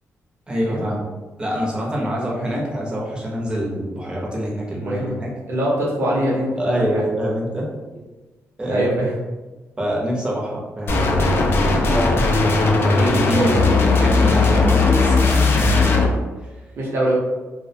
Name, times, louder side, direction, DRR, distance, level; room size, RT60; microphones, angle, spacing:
voice 1, 0.5-1.1 1.4-5.3 6.6-7.7 8.6-8.9 9.8-11.3 12.8-16.1, equal, 20° right, -3 dB, 0.6 m, -25 dB
voice 2, 4.8-5.2 5.5-7.0 8.7-9.1 11.9-12.1 13.3-13.8 16.8-17.1, right 1 dB, 55° right, -4 dB, 0.6 m, -23 dB
sound 1, 10.9-16.1, left 3 dB, 50° left, 0.3 m, -17 dB
2.4 x 2.0 x 2.6 m, 1.2 s
cardioid pair, 120°, 5 cm